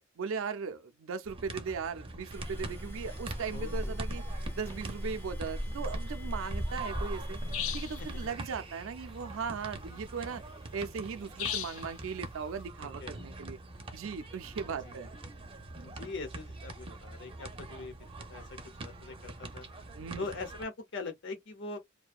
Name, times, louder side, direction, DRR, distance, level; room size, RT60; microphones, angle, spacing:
voice 1, 0.2-4.2 4.5-7.4 7.7-10.4 10.7-13.6 13.9-15.1 19.9-20.3, right 5 dB, 85° right, 0.5 m, -38 dB
sound 1, 1.2-20.6, right 2 dB, 25° right, 0.6 m, -44 dB
sound 2, 2.3-8.3, equal, 10° left, 0.6 m, -38 dB
voice 2, 3.5-4.0 8.0-8.1 13.0-13.2 14.8-15.0 15.8-17.9 18.3-18.4 18.8-19.7 20.2-21.8, left 3 dB, 60° left, 0.8 m, -41 dB
sound 3, 7.5-8.0 11.4-11.9, left 10 dB, 80° left, 0.4 m, -35 dB
2.6 x 2.1 x 2.4 m
head